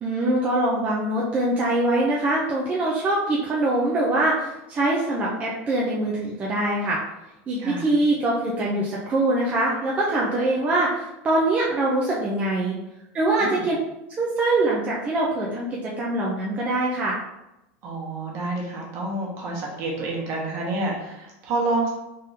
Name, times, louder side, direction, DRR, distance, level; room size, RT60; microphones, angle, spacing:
voice 1, 0.0-7.0 7.5-12.8 13.1-13.8 14.2-17.2, right 2 dB, 20° right, -5 dB, 0.6 m, -23 dB
voice 2, 7.6-7.9 13.4-13.7 17.8-21.9, right 2 dB, 45° right, -2 dB, 1.2 m, -28 dB
3.8 x 3.5 x 2.8 m, 0.90 s
supercardioid pair, 155°, 7 cm